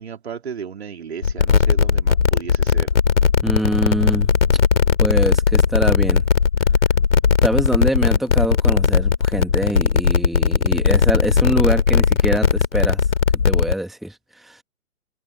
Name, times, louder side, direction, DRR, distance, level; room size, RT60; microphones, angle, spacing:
voice 1, 0.0-2.9, right 7 dB, 45° right, 3.6 m, -34 dB
sound 1, 1.2-13.7, left 6 dB, 55° left, 3.4 m, -17 dB
voice 2, 3.4-4.3 5.0-6.2 7.4-13.0 13.4-14.6, right 1 dB, ahead, 2.2 m, -24 dB
figure-of-eight pair, 135°, 43 cm